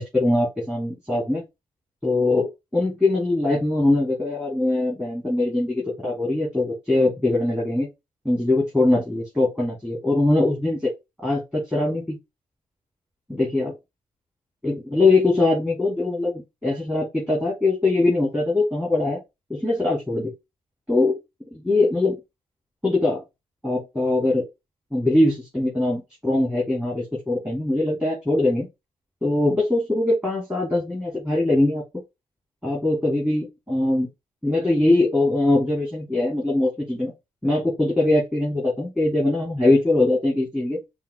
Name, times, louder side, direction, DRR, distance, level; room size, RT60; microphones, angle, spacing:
voice 1, 0.0-1.4 2.0-7.9 8.2-10.9 11.2-12.2 13.3-13.7 14.6-19.2 19.5-20.3 20.9-21.2 21.5-22.2 22.8-23.2 23.6-24.4 24.9-28.7 29.2-31.8 32.6-34.1 34.4-37.1 37.4-40.8, left 2 dB, 5° right, -3 dB, 3.0 m, -22 dB
5.6 x 2.5 x 3.7 m, 0.22 s
hypercardioid pair, 45°, 14 cm